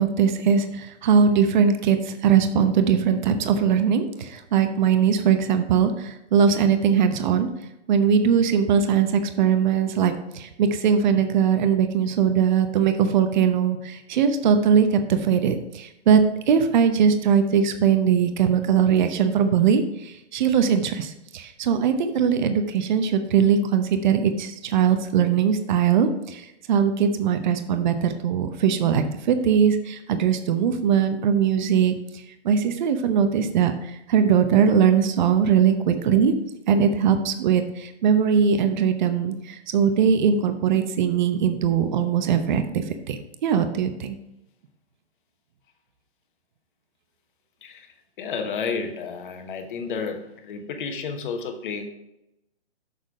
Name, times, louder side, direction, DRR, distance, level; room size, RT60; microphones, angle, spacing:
voice 1, 0.0-7.5 7.9-16.2 16.5-32.0 32.4-36.3 36.7-44.2, right 7 dB, 45° right, 8 dB, 0.8 m, -21 dB
voice 2, 48.2-51.8, left 5 dB, 50° left, 6 dB, 1.2 m, -31 dB
6.7 x 6.1 x 4.8 m, 0.88 s
hypercardioid pair, 140°, 34 cm